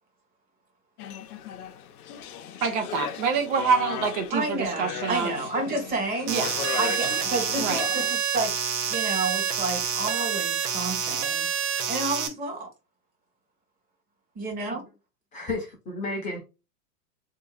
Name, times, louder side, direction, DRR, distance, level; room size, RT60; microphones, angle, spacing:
sound 1, 1.0-8.2, left 9 dB, 65° left, 0.8 m, -36 dB
voice 1, 2.6-5.3 6.3-6.5 7.6-7.8, right 5 dB, 50° right, 0.8 m, -26 dB
voice 2, 4.3-6.4 6.8-8.5 8.9-11.5 11.9-12.7 14.3-14.8, right 2 dB, 20° right, 1.2 m, -30 dB
sound 2, 6.3-12.3, right 8 dB, 75° right, 1.0 m, -27 dB
voice 3, 15.3-16.4, left 2 dB, 15° left, 0.8 m, -32 dB
3.8 x 2.8 x 2.3 m
hypercardioid pair, 145°, 47 cm